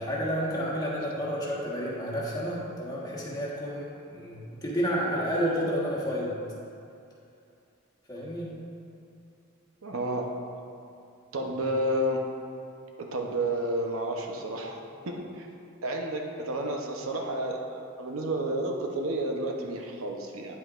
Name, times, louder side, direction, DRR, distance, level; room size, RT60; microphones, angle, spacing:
voice 1, 0.0-6.3 8.1-8.5, equal, 20° left, -5 dB, 1.4 m, -30 dB
voice 2, 9.8-10.3 11.3-12.2 13.0-14.8 15.0-15.5 15.8-20.6, right 1 dB, 75° right, 1 dB, 0.8 m, -31 dB
9.3 x 8.0 x 2.5 m, 2.6 s
head